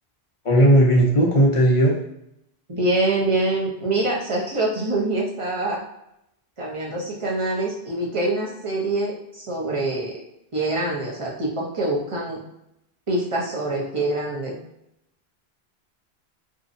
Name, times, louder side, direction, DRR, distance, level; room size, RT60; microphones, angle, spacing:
voice 1, 0.4-2.0, right 1 dB, 50° left, -2 dB, 0.4 m, -16 dB
voice 2, 2.7-5.8 6.6-10.2 10.5-12.4 13.1-14.6, right 2 dB, 35° right, -4 dB, 0.6 m, -25 dB
2.6 x 2.0 x 2.5 m, 0.79 s
omnidirectional pair, 1.1 m